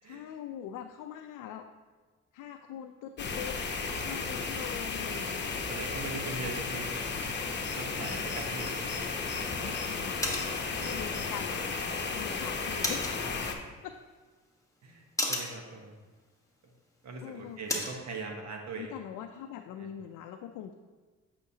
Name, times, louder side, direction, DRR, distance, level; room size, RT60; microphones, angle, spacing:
voice 1, 0.0-1.6 2.3-3.6 4.0-5.5 9.6-10.2 10.8-11.6 12.1-13.2 13.8-14.0 17.2-17.6 18.8-20.7, left 10 dB, 90° left, 5 dB, 0.5 m, -42 dB
sound 1, 3.2-13.5, left 4 dB, 35° left, 0.8 m, -34 dB
voice 2, 5.7-6.9 7.7-8.8 13.0-13.2 14.8-15.0 15.3-15.9 17.0-18.9 19.8-19.9, right 3 dB, 60° right, 2 dB, 1.1 m, -41 dB
sound 2, 8.6-18.0, left 1 dB, 10° left, 1.2 m, -40 dB
8.2 x 5.7 x 2.8 m, 1.4 s
cardioid pair, 90°, 30 cm